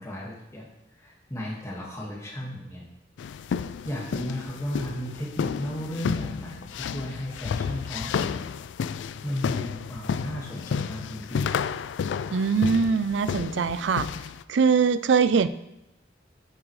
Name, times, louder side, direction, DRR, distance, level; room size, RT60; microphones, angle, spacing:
voice 1, 0.0-2.8 3.6-8.5 9.2-11.5, equal, 15° left, -4 dB, 1.7 m, -35 dB
sound 1, 3.2-14.4, left 6 dB, 75° left, 0.3 m, -31 dB
voice 2, 12.3-14.1 14.5-15.5, right 5 dB, 75° right, 13 dB, 0.4 m, -22 dB
9.7 x 7.5 x 3.2 m, 0.87 s
head